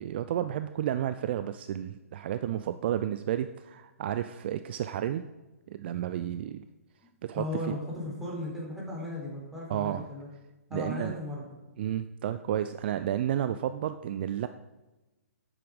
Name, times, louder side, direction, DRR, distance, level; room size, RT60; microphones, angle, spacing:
voice 1, 0.0-5.2 5.7-6.6 7.2-7.8 9.7-10.0 10.7-11.1 11.8-14.5, right 11 dB, 45° right, 11 dB, 0.5 m, -31 dB
voice 2, 7.3-10.3 10.7-11.5, left 1 dB, 5° right, -4 dB, 4.1 m, -36 dB
11.5 x 8.9 x 5.0 m, 1.1 s
figure-of-eight pair, 125°, 8 cm